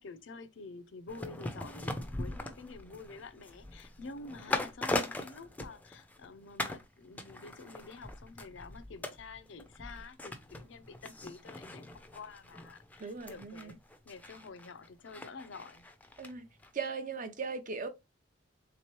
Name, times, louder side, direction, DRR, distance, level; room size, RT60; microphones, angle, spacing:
voice 1, 0.0-13.8 14.0-15.8, left 4 dB, 75° left, 0.5 m, -49 dB
sound 1, 1.1-6.3 6.6-6.9 7.2-16.3 16.6-16.7, left 2 dB, 10° left, 0.4 m, -40 dB
voice 2, 13.0-13.7 16.2-16.5 16.7-17.9, right 5 dB, 45° right, 0.6 m, -38 dB
3.6 x 3.0 x 2.9 m
head